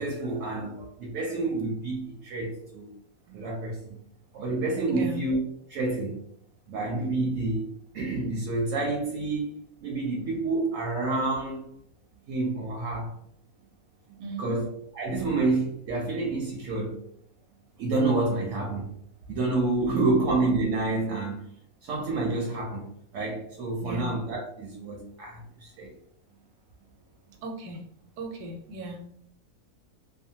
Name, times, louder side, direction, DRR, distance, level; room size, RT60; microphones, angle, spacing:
voice 1, 0.0-2.9 3.3-4.0 4.3-5.4 5.7-6.2 6.7-11.7 12.3-13.1 14.4-14.7 14.9-17.0 17.8-18.9 19.3-21.4 21.8-22.9 23.1-25.9, right 2 dB, 65° right, 0.9 m, -28 dB
voice 2, 4.9-5.3 14.2-14.6 19.8-20.2 23.8-24.1 27.4-27.8 28.2-29.0, right 1 dB, 90° right, 1.2 m, -37 dB
2.6 x 2.1 x 2.7 m
omnidirectional pair, 1.7 m